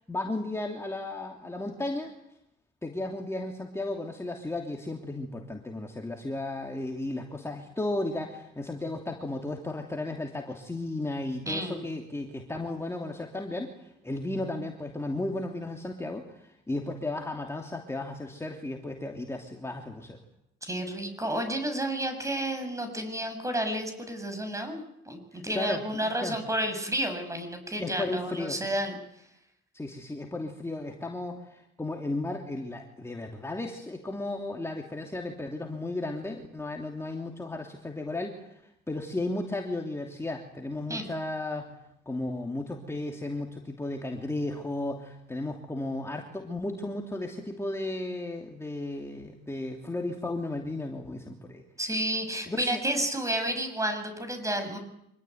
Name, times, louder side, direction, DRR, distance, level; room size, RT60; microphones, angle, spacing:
voice 1, 0.0-2.1 2.8-20.2 25.3-26.4 27.8-28.6 29.7-38.6 38.9-41.7 42.1-51.6 52.5-52.8, left 2 dB, 15° left, 1 dB, 3.0 m, -34 dB
voice 2, 11.5-11.8 20.6-29.0 40.9-41.0 51.8-54.8, right 1 dB, 15° right, 7 dB, 7.5 m, -31 dB
26.0 x 20.5 x 9.4 m, 0.80 s
cardioid pair, 90°, 20 cm